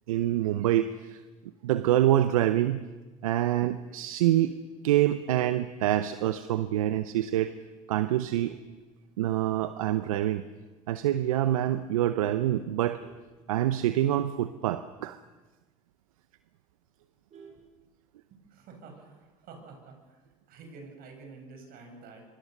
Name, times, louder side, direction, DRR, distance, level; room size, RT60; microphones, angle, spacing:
voice 1, 0.1-1.2 1.6-2.8 3.2-4.6 4.8-7.5 7.9-8.6 9.2-10.4 10.9-13.0 13.5-15.2, right 13 dB, 85° right, 12 dB, 0.8 m, -26 dB
Vehicle horn car horn honking, 8.3-9.6 10.0-10.3 10.6-10.7 11.1-11.2 11.5-11.9 12.4-14.2 14.6-14.7 15.0-15.1 15.5-15.6 16.0-16.1 16.3-18.4 19.5-20.0, right 5 dB, 45° right, 6.0 m, -55 dB
voice 2, 18.3-22.2, right 4 dB, 60° right, 3 dB, 7.6 m, -49 dB
25.0 x 24.5 x 6.7 m, 1.2 s
hypercardioid pair, 65°, 17 cm